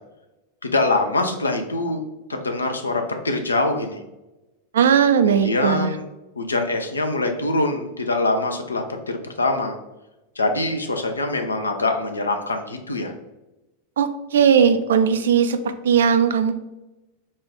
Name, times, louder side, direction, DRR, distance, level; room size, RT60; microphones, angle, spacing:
voice 1, 0.6-2.0 2.3-4.0 5.2-6.1 6.4-9.8 10.4-13.1, left 2 dB, 75° left, 5 dB, 0.5 m, -24 dB
voice 2, 4.7-5.9 14.0-16.5, right 7 dB, 65° right, 10 dB, 0.3 m, -18 dB
4.1 x 2.4 x 3.7 m, 1.0 s
figure-of-eight pair, 90°, 0 cm